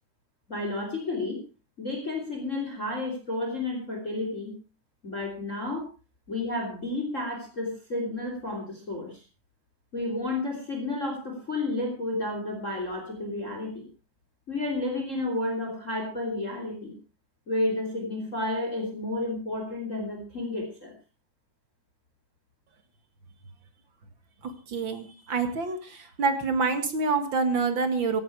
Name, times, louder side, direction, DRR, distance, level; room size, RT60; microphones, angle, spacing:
voice 1, 0.5-1.4 1.8-4.5 5.0-5.9 6.3-9.2 9.9-13.9 14.5-16.9 17.5-20.9, left 2 dB, 25° left, 3 dB, 3.4 m, -31 dB
voice 2, 24.4-28.2, right 4 dB, 45° right, 8 dB, 2.2 m, -27 dB
15.5 x 13.5 x 4.7 m, 0.33 s
omnidirectional pair, 3.6 m